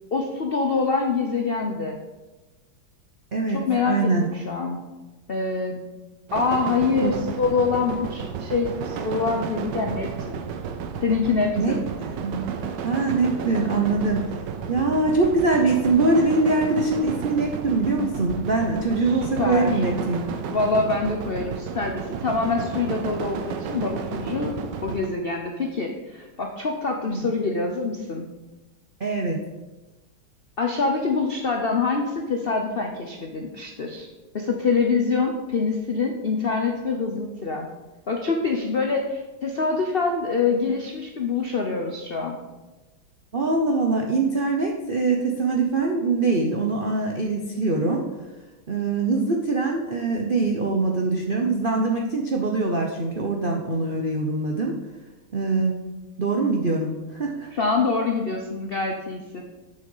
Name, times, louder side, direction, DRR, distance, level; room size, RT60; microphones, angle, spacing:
voice 1, 0.1-2.0 3.5-4.8 5.3-5.8 6.3-10.4 11.0-11.8 18.9-19.8 20.5-24.5 24.8-28.3 30.6-34.1 34.3-37.7 38.1-42.4 57.5-59.4, left 4 dB, 90° left, 2 dB, 0.5 m, -25 dB
voice 2, 3.3-4.3 7.0-7.1 11.6-11.8 12.2-12.4 12.8-14.3 14.7-20.3 27.1-27.2 29.0-29.4 43.3-48.0 48.7-54.7 55.3-55.8 56.2-57.5, right 3 dB, 90° right, 1 dB, 0.4 m, -23 dB
sound 1, 6.3-25.1, right 6 dB, 70° right, 1.3 m, -32 dB
7.4 x 6.7 x 5.5 m, 1.1 s
omnidirectional pair, 2.2 m